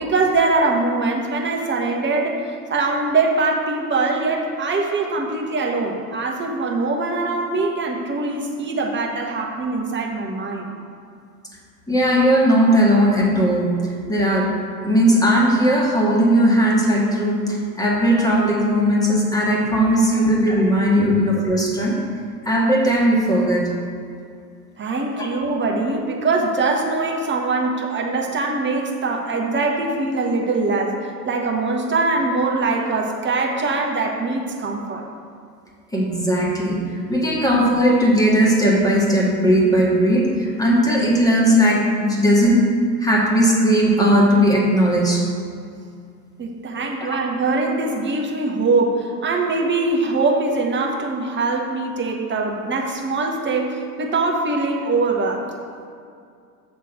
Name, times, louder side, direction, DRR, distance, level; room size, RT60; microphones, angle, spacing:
voice 1, 0.0-10.8 20.1-20.2 21.0-21.1 24.8-35.0 46.4-55.5, right 3 dB, 25° right, 0 dB, 1.2 m, -22 dB
voice 2, 11.9-13.8 14.1-14.5 14.8-22.0 22.4-23.8 25.2-25.3 35.9-42.6 43.0-45.3 47.0-47.2, equal, 5° left, -3 dB, 1.9 m, -17 dB
8.2 x 3.7 x 6.6 m, 2.3 s
figure-of-eight pair, 75°, 48 cm